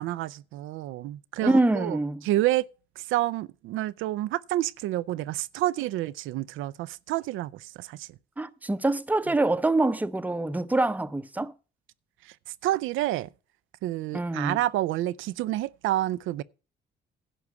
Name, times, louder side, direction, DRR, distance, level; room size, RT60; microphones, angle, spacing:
voice 1, 0.0-2.0 2.2-2.7 3.0-8.1 12.3-12.4 12.6-13.3 13.8-16.4, right 15 dB, 90° right, 0.4 m, -29 dB
voice 2, 1.4-2.2 8.4-11.5 14.1-14.6, right 2 dB, 10° right, 0.7 m, -25 dB
11.0 x 4.7 x 8.2 m
cardioid pair, 90°, 20 cm